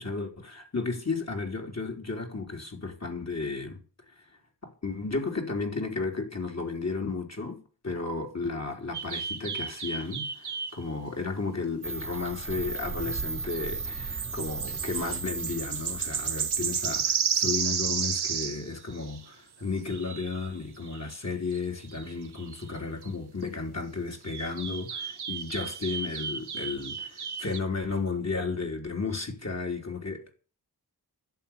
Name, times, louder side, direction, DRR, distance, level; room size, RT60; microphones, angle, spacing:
voice 1, 0.0-3.8 4.1-4.3 4.6-30.3, left 4 dB, 45° left, 3.9 m, -33 dB
sound 1, 8.9-10.8 13.1-13.2 13.5-13.6 13.8-19.2 19.9-20.5 20.8-21.2 21.5-21.6 21.8-22.8 23.0-23.1 24.3-27.6, right 6 dB, 85° right, 1.2 m, -33 dB
sound 2, 11.8-17.6, right 4 dB, 35° right, 0.7 m, -36 dB
11.5 x 8.4 x 8.9 m
wide cardioid pair, 70°, 38 cm